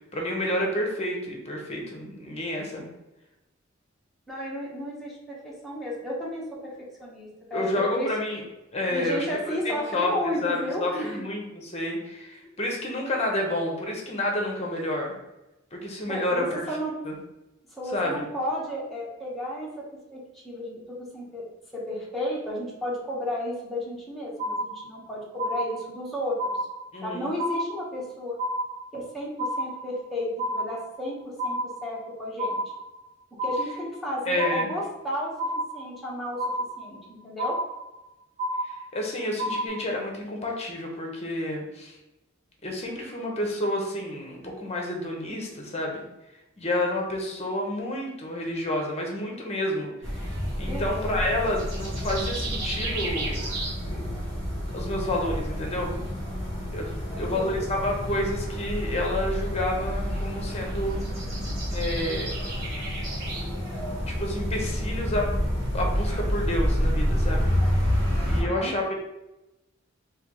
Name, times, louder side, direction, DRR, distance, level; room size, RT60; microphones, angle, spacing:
voice 1, 0.1-2.9 7.5-8.4 8.7-9.3 9.6-15.2 15.7-16.7 17.1-17.2 17.9-18.3 26.9-27.3 34.3-34.7 38.6-42.0 42.6-46.0 46.6-53.4 53.9-54.1 54.7-55.9 56.7-61.0 61.7-62.3 64.1-65.3 65.7-67.5 68.2-68.9, left 1 dB, 35° left, 1 dB, 0.8 m, -29 dB
voice 2, 4.3-6.4 7.0-7.6 7.9-8.1 8.9-11.2 16.1-17.0 17.7-19.8 20.1-21.4 21.7-26.6 27.0-28.4 28.9-31.2 31.4-32.6 33.4-37.6 50.7-50.8 57.1-57.7 68.4-68.8, left 1 dB, ahead, -6 dB, 1.0 m, -33 dB
sound 1, 24.4-25.1 25.4-26.1 26.4-27.1 27.4-28.1 28.4-29.1 29.4-30.1 30.4-31.1 31.4-32.1 32.4-33.1 33.4-34.1 34.4-35.1 35.4-36.1 36.4-37.1 37.4-38.1 38.4-39.1 39.4-39.7, equal, 30° right, 0.9 m, -30 dB
sound 2, 50.0-68.4, equal, 65° right, 1.4 m, -29 dB
sound 3, 51.6-68.4, left 2 dB, 65° left, 0.5 m, -42 dB
3.3 x 2.8 x 3.8 m, 0.96 s
head